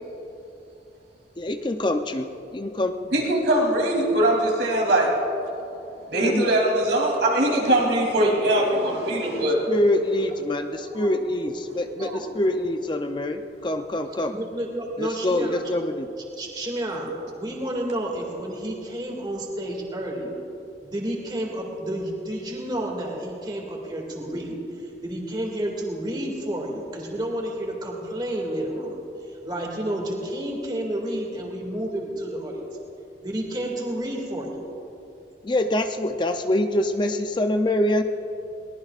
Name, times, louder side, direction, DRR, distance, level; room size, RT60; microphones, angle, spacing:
voice 1, 1.4-2.3 2.5-2.9 6.1-6.5 9.7-14.3 15.0-16.1 35.4-38.0, left 1 dB, 25° left, 7 dB, 0.5 m, -25 dB
voice 2, 3.1-5.1 6.1-9.7, right 1 dB, 80° right, -2 dB, 3.1 m, -21 dB
voice 3, 7.2-7.5 10.7-11.1 11.4-11.5 11.9-12.2 14.3-15.6 16.4-20.4 20.8-29.0 29.3-32.6 33.2-34.5, right 1 dB, 25° right, -1 dB, 2.2 m, -31 dB
22.0 x 18.5 x 2.5 m, 2.8 s
head